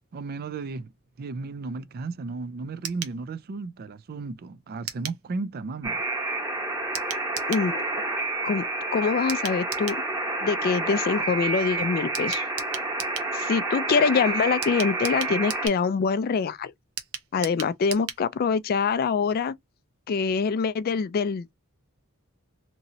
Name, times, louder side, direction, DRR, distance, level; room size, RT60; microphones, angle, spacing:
voice 1, 0.1-0.9 1.2-6.0 15.3-15.4, right 3 dB, 45° right, 0.4 m, -34 dB
sound 1, 2.8-3.2 4.9-5.2 6.9-7.7 9.3-10.0 12.1-13.3 14.6-15.8 17.0-18.2 18.5-18.6 18.9-19.0, right 8 dB, 75° right, 0.7 m, -36 dB
Alarm, 5.8-15.7, right 2 dB, 15° right, 0.9 m, -29 dB
voice 2, 7.5-8.1 8.4-8.7 8.9-10.0 10.4-12.5 13.3-16.7 17.3-19.5 20.1-21.5, left 5 dB, 45° left, 0.3 m, -25 dB
3.0 x 2.7 x 2.6 m
head